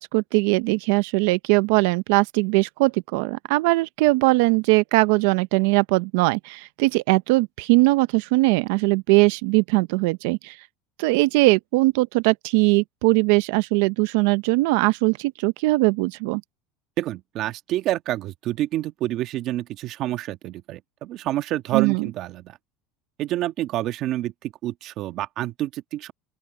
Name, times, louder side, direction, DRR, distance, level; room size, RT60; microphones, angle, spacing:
voice 1, 0.0-10.6 11.0-16.4 21.7-22.1, right 23 dB, 75° right, 0.6 m, -20 dB
voice 2, 17.0-22.6 23.2-26.1, right 14 dB, 50° right, 1.5 m, -28 dB
open air
supercardioid pair, 125°, 0 cm